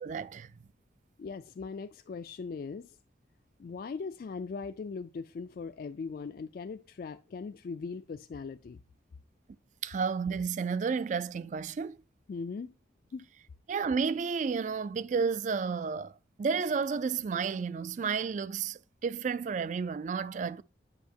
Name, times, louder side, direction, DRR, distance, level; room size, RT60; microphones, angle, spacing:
voice 1, 0.0-0.5 9.8-12.0 13.7-20.6, right 5 dB, 40° right, 0.3 m, -32 dB
voice 2, 1.2-3.0 3.6-8.8 12.3-12.7 13.1-13.3, left 4 dB, 50° left, 0.3 m, -39 dB
8.1 x 5.5 x 2.8 m
head